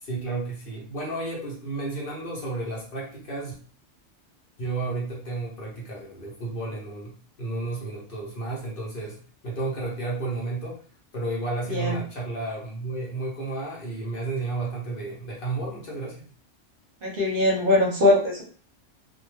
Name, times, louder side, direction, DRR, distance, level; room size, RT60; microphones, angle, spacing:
voice 1, 0.0-3.5 4.6-10.8 11.1-16.3, right 2 dB, 55° left, -3 dB, 0.7 m, -32 dB
voice 2, 17.0-18.4, left 2 dB, 55° right, -2 dB, 0.8 m, -21 dB
2.2 x 2.1 x 3.0 m, 0.42 s
omnidirectional pair, 1.3 m